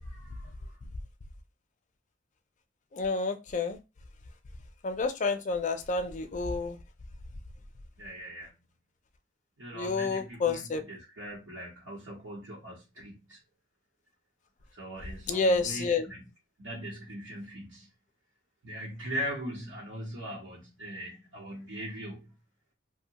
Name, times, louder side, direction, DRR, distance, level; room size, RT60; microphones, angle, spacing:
voice 1, 0.0-0.5 8.0-8.5 9.6-13.4 14.7-16.2 16.6-17.9 18.6-22.3, equal, 90° right, 1.0 m, -40 dB
voice 2, 2.9-3.8 4.8-6.8 9.7-10.8 15.3-16.1, left 3 dB, 40° left, 0.4 m, -29 dB
2.7 x 2.2 x 2.8 m
head